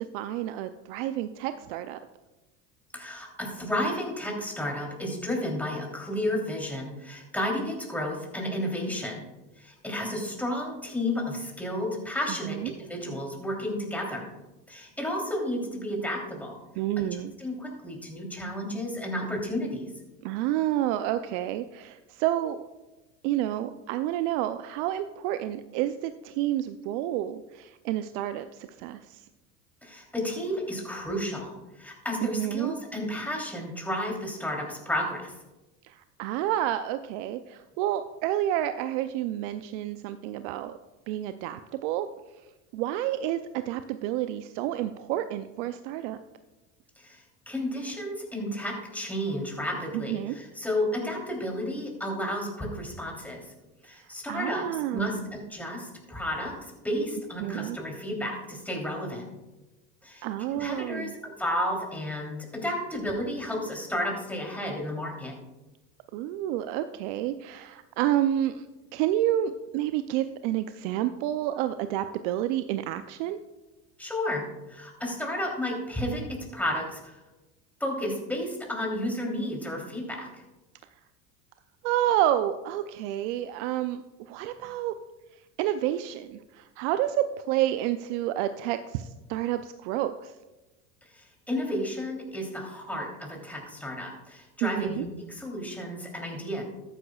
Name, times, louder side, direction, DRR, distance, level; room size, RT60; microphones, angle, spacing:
voice 1, 0.1-2.0 12.5-12.7 16.8-17.3 20.2-22.7 23.2-29.2 32.2-32.7 35.8-40.8 41.1-42.1 42.7-46.2 49.9-50.4 54.3-55.2 57.4-57.8 60.2-61.1 66.1-68.6 68.9-73.4 81.8-85.0 85.6-90.3 94.6-95.1, right 12 dB, 70° right, 10 dB, 0.6 m, -29 dB
voice 2, 2.9-9.3 9.6-14.3 14.7-16.6 17.0-17.1 17.4-19.9 29.8-35.3 47.0-53.5 53.8-59.2 60.0-65.3 74.0-77.2 77.8-80.4 91.1-96.6, left 1 dB, 5° left, -1 dB, 3.2 m, -32 dB
13.5 x 10.0 x 2.4 m, 1.1 s
hypercardioid pair, 90°, 37 cm